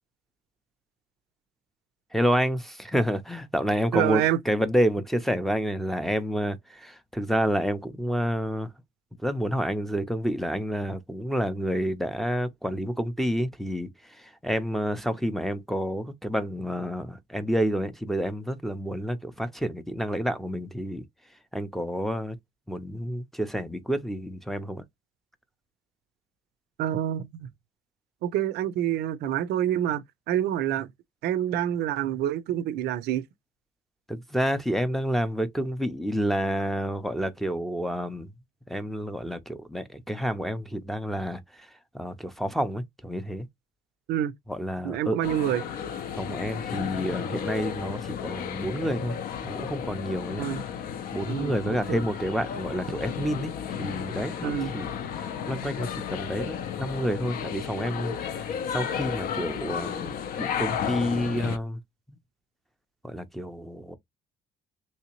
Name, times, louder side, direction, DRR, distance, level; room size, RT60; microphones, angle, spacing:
voice 1, 2.1-8.7 9.2-21.0 21.5-22.4 22.7-24.8 34.1-38.3 38.7-41.7 41.9-43.5 44.5-45.2 46.1-49.2 49.4-50.4 51.1-61.8 63.0-64.0, equal, ahead, 0.5 m, -29 dB
voice 2, 3.9-4.4 26.8-27.5 28.2-30.9 31.2-33.2 44.1-44.3 44.8-45.6 50.4-50.6 51.3-52.0 54.4-54.7, right 11 dB, 75° right, 0.5 m, -27 dB
sound 1, 45.2-61.6, left 8 dB, 60° left, 0.5 m, -33 dB
3.3 x 2.8 x 2.9 m
cardioid pair, 110°, 17 cm